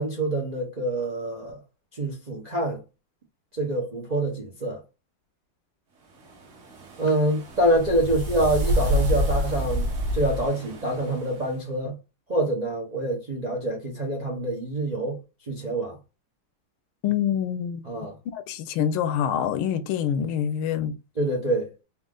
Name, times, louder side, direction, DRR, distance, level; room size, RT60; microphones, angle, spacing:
voice 1, 0.0-1.6 2.0-2.8 3.5-4.8 7.0-12.0 12.3-15.2 15.5-16.0 17.8-18.1 21.2-21.7, right 1 dB, 85° right, 0.3 m, -26 dB
sound 1, 6.2-11.5, equal, 45° right, 1.1 m, -28 dB
voice 2, 17.0-21.0, left 9 dB, 80° left, 1.4 m, -26 dB
4.2 x 2.5 x 3.7 m
omnidirectional pair, 2.4 m